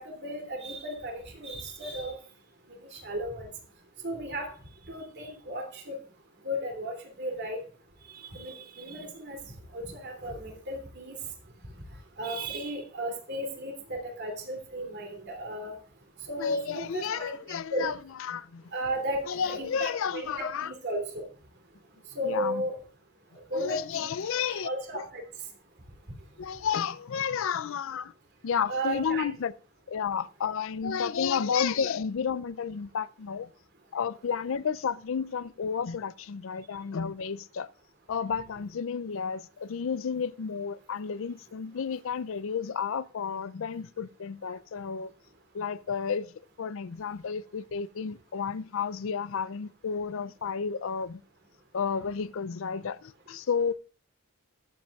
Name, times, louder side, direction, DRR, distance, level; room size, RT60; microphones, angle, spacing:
voice 1, 0.0-2.2 2.9-3.5 4.0-4.5 4.9-6.0 6.4-7.6 8.2-9.4 9.7-11.2 12.2-15.7 16.3-17.3 17.7-17.9 18.7-21.3 22.1-22.7 23.5-25.2 28.7-29.3, equal, 50° right, 2.9 m, -34 dB
voice 2, 16.4-17.9 18.2-18.6 19.3-20.7 22.2-22.6 23.5-25.0 26.4-28.1 28.4-29.5 29.9-33.5 33.9-37.7 38.1-45.1 45.5-46.3 46.6-51.2 51.7-53.7, left 6 dB, 60° left, 0.4 m, -32 dB
21.0 x 7.7 x 2.4 m
head